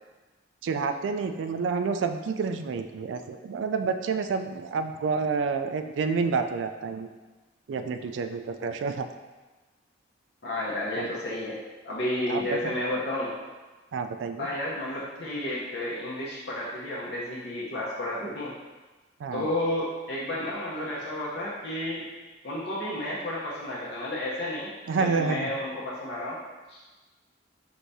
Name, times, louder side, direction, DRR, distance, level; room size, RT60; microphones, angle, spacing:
voice 1, 0.6-7.1 7.7-9.1 11.0-11.1 12.3-12.6 13.9-14.5 19.2-19.5 24.9-25.5, right 5 dB, 75° right, 8 dB, 0.3 m, -29 dB
voice 2, 10.4-11.6 11.8-13.3 14.4-18.5 19.3-22.0 22.4-26.4 26.7-26.8, left 1 dB, 60° left, -6 dB, 0.8 m, -31 dB
4.8 x 3.4 x 2.7 m, 1.2 s
head